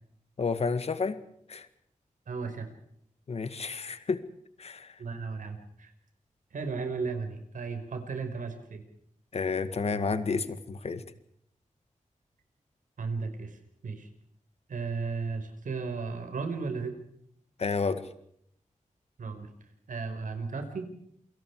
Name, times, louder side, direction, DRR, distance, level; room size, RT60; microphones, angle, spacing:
voice 1, 0.4-1.2 1.5-1.7 3.3-4.2 4.6-5.0 9.3-11.0 17.6-18.0, left 4 dB, 50° left, 11 dB, 2.0 m, -30 dB
voice 2, 2.3-2.7 5.0-5.9 6.5-8.8 13.0-13.6 13.8-14.1 14.7-17.0 19.2-19.5 19.9-20.9, right 4 dB, 90° right, 7 dB, 5.2 m, -35 dB
28.5 x 24.5 x 4.9 m, 0.69 s
wide cardioid pair, 170°, 13 cm